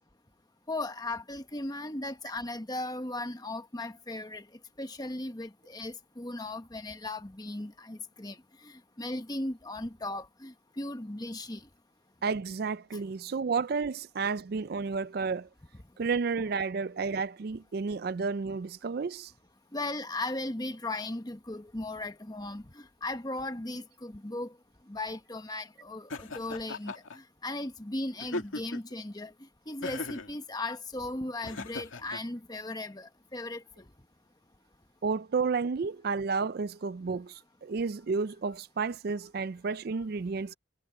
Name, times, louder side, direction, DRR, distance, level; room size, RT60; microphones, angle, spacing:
voice 1, 0.7-4.5 4.8-11.7 19.7-24.6 24.9-33.9, left 2 dB, 20° left, 1.1 m, -37 dB
voice 2, 12.2-15.5 16.0-19.3 35.0-40.5, right 4 dB, 50° right, 0.4 m, -31 dB
Laughter, 26.1-27.2 28.2-28.9 29.8-30.3 31.4-32.2, left 2 dB, 85° left, 2.3 m, -38 dB
head